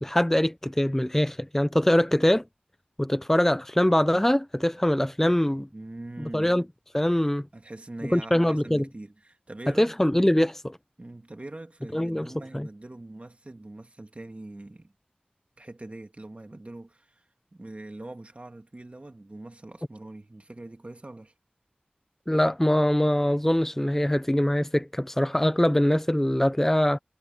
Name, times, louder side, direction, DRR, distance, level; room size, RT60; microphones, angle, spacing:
voice 1, 0.0-2.4 3.0-5.7 6.3-6.6 6.9-7.5 8.1-8.9 9.8-10.8 11.9-12.7 22.3-27.0, left 1 dB, 10° left, 0.6 m, -23 dB
voice 2, 5.7-6.6 7.5-9.9 11.0-14.9 15.6-17.2 17.5-21.3, right 2 dB, 45° right, 2.5 m, -42 dB
wide cardioid pair, 55°, 3 cm